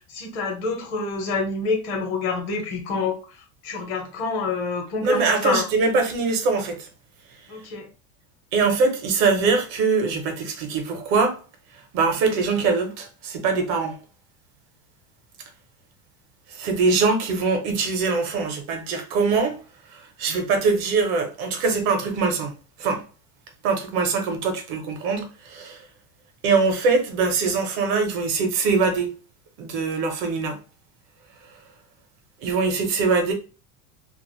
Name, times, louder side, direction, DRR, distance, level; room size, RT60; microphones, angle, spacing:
voice 1, 0.1-3.2 3.6-5.7 7.5-7.9, left 4 dB, 65° left, 1.0 m, -27 dB
voice 2, 5.0-6.9 8.5-11.4 11.9-14.0 16.5-19.6 19.9-23.0 23.6-25.8 26.4-29.1 29.6-30.6 32.4-33.3, right 4 dB, 60° right, 0.8 m, -23 dB
2.5 x 2.4 x 2.9 m
cardioid pair, 165°, 36 cm